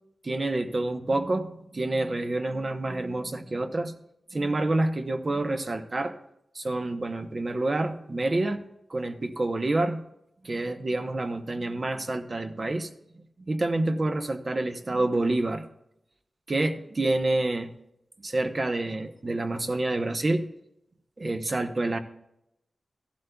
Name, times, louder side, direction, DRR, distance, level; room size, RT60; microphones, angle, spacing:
voice 1, 0.2-3.9 4.3-6.1 6.5-8.6 8.9-10.0 10.4-12.9 13.1-15.7 16.5-17.7 18.2-20.4 21.2-22.0, right 2 dB, 40° right, 7 dB, 0.8 m, -28 dB
15.5 x 11.5 x 2.3 m, 0.83 s
wide cardioid pair, 120°, 0 cm